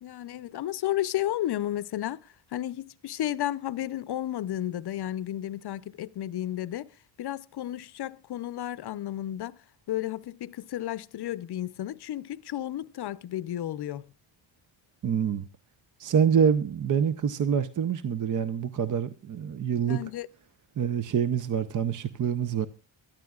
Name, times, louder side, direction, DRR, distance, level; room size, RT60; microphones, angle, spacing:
voice 1, 0.0-6.9 7.2-9.6 9.9-14.1 19.8-20.3, left 13 dB, 50° left, 0.7 m, -33 dB
voice 2, 15.0-15.5 16.0-20.0 20.8-22.7, right 7 dB, 40° right, 0.7 m, -26 dB
23.5 x 13.5 x 2.4 m
cardioid pair, 110°, 49 cm